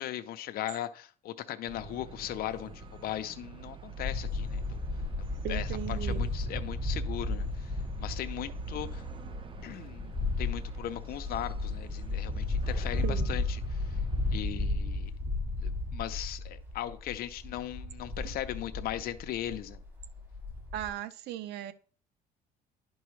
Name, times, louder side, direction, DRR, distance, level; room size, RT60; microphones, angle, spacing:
voice 1, 0.0-4.8 5.5-7.7 8.0-9.0 9.6-14.0 14.3-15.1 15.6-19.8, left 12 dB, 65° left, 0.6 m, -38 dB
sound 1, 1.6-14.4, right 5 dB, 30° right, 0.7 m, -47 dB
sound 2, 4.0-20.9, left 2 dB, 15° right, 2.0 m, -34 dB
voice 2, 5.4-6.2 13.0-13.3 18.2-18.3 20.7-21.7, right 12 dB, 75° right, 0.6 m, -37 dB
11.0 x 4.6 x 3.2 m
cardioid pair, 110°, 17 cm